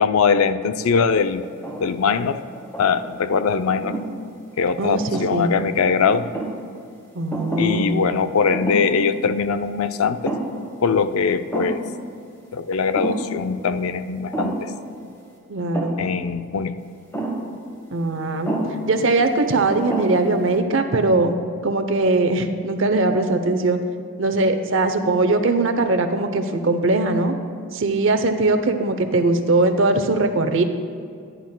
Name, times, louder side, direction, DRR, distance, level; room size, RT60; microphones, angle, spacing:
voice 1, 0.0-1.4 1.8-2.4 2.8-4.0 4.6-6.3 7.6-10.3 10.8-11.8 12.5-14.7 16.0-16.8, left 5 dB, 85° left, 11 dB, 0.4 m, -21 dB
sound 1, 1.4-2.0 2.5-3.2 3.8-4.1 4.9-5.6 6.1-6.6 7.3-7.8 8.1-8.2 8.5-9.0 9.4-9.5 10.0-10.7 11.0-11.1 11.5-11.9 12.9-13.3 14.3-14.8 15.7-16.1 17.1-17.5 18.4-18.8 19.5-19.6 19.9-20.4, right 1 dB, 10° left, 1.1 m, -29 dB
voice 2, 4.8-5.5 7.1-8.0 15.5-16.0 17.9-18.5 18.9-21.4 21.6-23.8 24.2-27.3 27.7-30.6, right 2 dB, 65° right, 8 dB, 0.7 m, -20 dB
14.5 x 10.0 x 2.2 m, 2.4 s
head